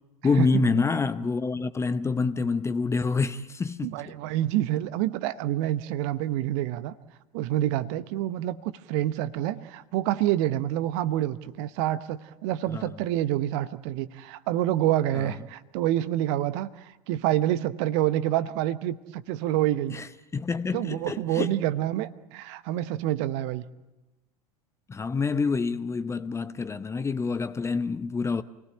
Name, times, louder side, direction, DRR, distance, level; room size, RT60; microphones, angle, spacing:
voice 1, 0.2-3.9 12.7-12.9 15.2-15.3 19.9-20.1 20.3-21.5 24.9-28.4, left 4 dB, 15° left, 0.8 m, -27 dB
voice 2, 3.8-6.9 7.3-20.0 20.7-23.6, right 13 dB, 45° right, 1.0 m, -27 dB
28.0 x 19.0 x 8.9 m
figure-of-eight pair, 85°, 20 cm